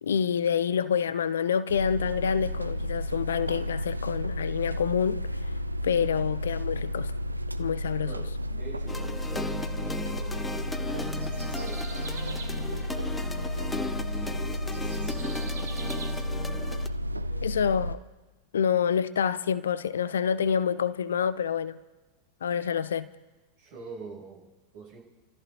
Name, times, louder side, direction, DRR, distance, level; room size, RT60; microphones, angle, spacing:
voice 1, 0.0-5.3 5.8-7.1 7.6-8.1 17.4-18.0 18.5-21.8 22.4-23.1, left 7 dB, 65° left, 0.5 m, -27 dB
sound 1, 1.7-17.9, equal, 85° right, 0.4 m, -32 dB
voice 2, 8.0-12.0 12.7-15.6 17.1-17.6 23.6-25.0, right 5 dB, 50° right, 7.1 m, -47 dB
sound 2, 8.9-16.9, left 3 dB, 10° left, 0.6 m, -37 dB
sound 3, 9.3-16.1, right 6 dB, 65° right, 1.2 m, -48 dB
30.0 x 14.0 x 2.8 m
figure-of-eight pair, 90°, 0 cm